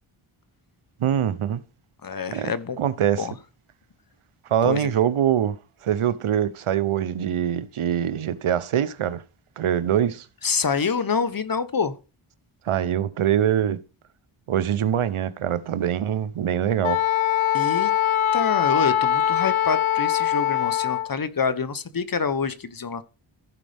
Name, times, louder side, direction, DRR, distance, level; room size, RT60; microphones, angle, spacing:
voice 1, 1.0-1.6 2.3-2.5 2.8-3.3 4.5-5.6 5.8-9.2 9.6-10.3 12.6-13.8 14.5-17.0, right 10 dB, 80° right, 0.8 m, -23 dB
voice 2, 2.0-2.8 3.2-3.3 4.6-4.9 10.4-11.9 17.5-17.9 18.3-23.0, left 5 dB, 45° left, 1.0 m, -26 dB
Wind instrument woodwind instrument, 16.8-21.1, left 11 dB, 70° left, 0.6 m, -22 dB
15.0 x 5.3 x 3.4 m
cardioid pair, 60°, 49 cm